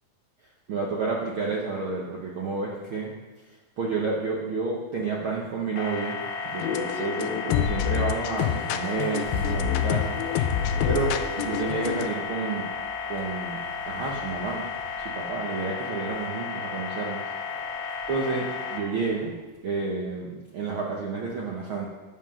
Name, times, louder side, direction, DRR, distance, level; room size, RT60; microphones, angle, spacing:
voice 1, 0.7-3.1 3.8-6.2 6.5-10.2 10.8-12.6 13.1-13.6 13.9-14.7 15.1-17.2 18.1-18.4 18.7-19.3 19.6-21.8, right 4 dB, 85° right, -3 dB, 1.1 m, -30 dB
sound 1, 5.8-18.8, left 5 dB, 65° left, 2.1 m, -33 dB
sound 2, 6.3-20.0, right 1 dB, 20° right, 1.8 m, -48 dB
sound 3, 6.6-12.1, left 9 dB, 85° left, 2.4 m, -27 dB
10.5 x 7.7 x 5.6 m, 1.3 s
omnidirectional pair, 4.0 m